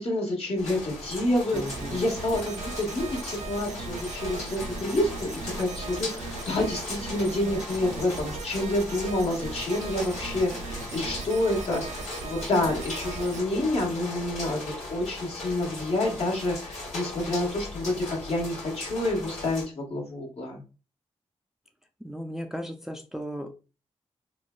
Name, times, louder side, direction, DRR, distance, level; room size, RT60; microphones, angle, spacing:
voice 1, 0.0-14.6 14.9-20.6, left 1 dB, 60° left, 0 dB, 1.3 m, -28 dB
sound 1, 0.6-19.7, left 2 dB, 75° left, 1.5 m, -38 dB
voice 2, 1.5-2.0 22.0-23.5, equal, 5° right, 5 dB, 0.4 m, -36 dB
sound 2, 1.5-13.4, right 4 dB, 80° right, 0.4 m, -39 dB
3.1 x 2.3 x 2.2 m, 0.32 s
supercardioid pair, 45°, 12 cm